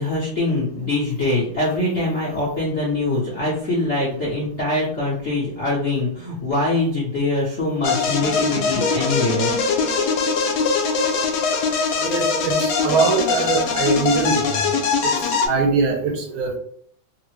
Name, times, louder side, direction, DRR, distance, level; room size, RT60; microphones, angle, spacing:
voice 1, 0.0-9.5, left 2 dB, 60° left, -7 dB, 0.7 m, -23 dB
sound 1, 7.8-15.5, left 5 dB, 75° left, 1.4 m, -22 dB
voice 2, 12.0-14.6 15.0-16.6, right 4 dB, 75° right, 3 dB, 1.4 m, -22 dB
3.7 x 2.1 x 3.1 m, 0.62 s
omnidirectional pair, 2.4 m